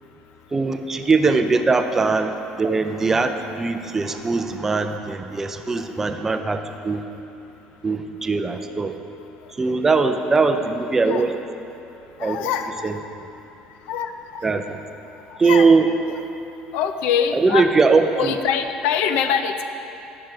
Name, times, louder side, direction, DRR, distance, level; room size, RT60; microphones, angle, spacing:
voice 1, 0.5-7.0 7.8-9.0 9.6-11.3 12.2-12.5 12.8-13.0 14.4-14.8 15.4-15.9 17.3-18.4, right 4 dB, 15° right, 7 dB, 0.4 m, -20 dB
voice 2, 12.2-12.9 13.9-14.4 15.4-15.7 16.7-17.6 18.1-19.6, left 8 dB, 75° left, 8 dB, 0.5 m, -23 dB
9.2 x 6.0 x 4.6 m, 2.9 s
cardioid pair, 155°, 2 cm